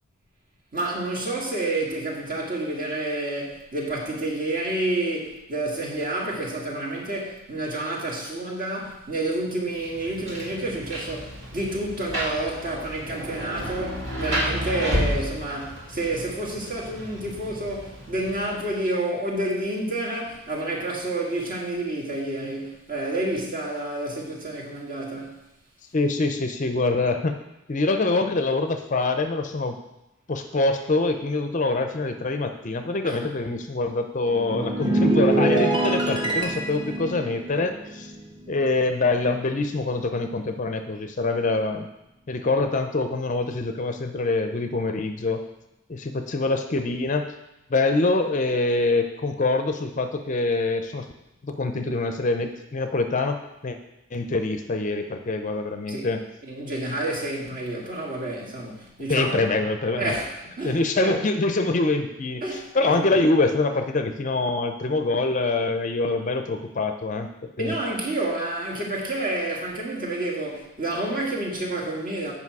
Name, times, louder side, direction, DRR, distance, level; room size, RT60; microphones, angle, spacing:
voice 1, 0.7-25.4 33.0-33.2 55.9-56.1 56.4-59.5 60.0-61.2 62.4-63.1 67.6-72.3, right 2 dB, 40° right, -2 dB, 1.7 m, -29 dB
Rain, 9.7-18.8, equal, 60° right, 2.2 m, -32 dB
voice 2, 25.9-27.3 27.7-29.8 30.3-38.1 38.5-41.9 42.3-45.4 45.9-47.3 47.7-51.1 51.4-53.8 54.1-56.2 59.1-60.2 60.6-67.8, left 3 dB, 35° left, 7 dB, 0.5 m, -25 dB
sound 1, 34.3-38.9 39.2-39.5, right 2 dB, 20° right, 1.2 m, -25 dB
8.3 x 5.3 x 4.7 m, 0.91 s
head